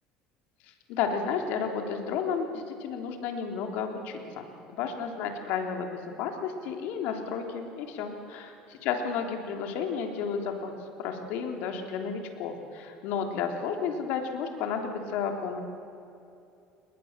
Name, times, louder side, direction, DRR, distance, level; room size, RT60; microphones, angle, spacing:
voice 1, 0.9-8.5 8.8-10.7 11.0-15.6, left 6 dB, 75° left, 4 dB, 3.5 m, -32 dB
30.0 x 20.5 x 7.5 m, 2.6 s
cardioid pair, 130°, 3 cm